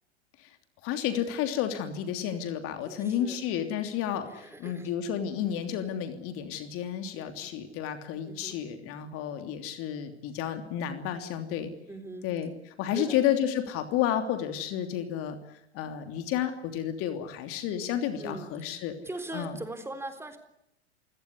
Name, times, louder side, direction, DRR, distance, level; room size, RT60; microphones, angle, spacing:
voice 1, 0.8-11.7 12.2-12.5 12.8-15.4 15.7-18.9 19.3-19.5, left 10 dB, 45° left, 8 dB, 3.1 m, -31 dB
voice 2, 2.8-3.4 4.3-4.9 7.2-7.5 8.3-8.6 11.9-12.3 12.9-13.2 18.2-20.4, right 2 dB, 10° right, 8 dB, 3.7 m, -41 dB
29.0 x 17.5 x 9.7 m, 0.80 s
hypercardioid pair, 100°, 33 cm